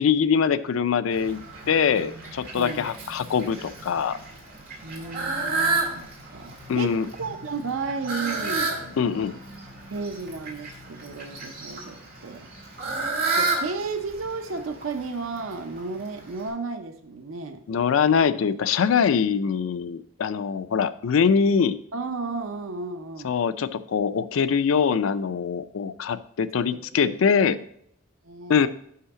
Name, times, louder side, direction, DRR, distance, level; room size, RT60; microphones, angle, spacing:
voice 1, 0.0-4.2 6.7-7.1 9.0-9.4 17.7-21.8 23.2-27.6 28.5-28.7, left 6 dB, 80° left, 14 dB, 0.4 m, -23 dB
Fowl, 1.1-16.5, right 3 dB, 50° right, 2.0 m, -32 dB
voice 2, 2.6-2.9 4.8-8.8 9.9-12.5 13.3-17.6 21.9-23.3 26.7-27.1 27.4-27.5 28.2-28.7, right 4 dB, 80° right, 8 dB, 0.7 m, -33 dB
5.7 x 5.6 x 5.7 m, 0.68 s
head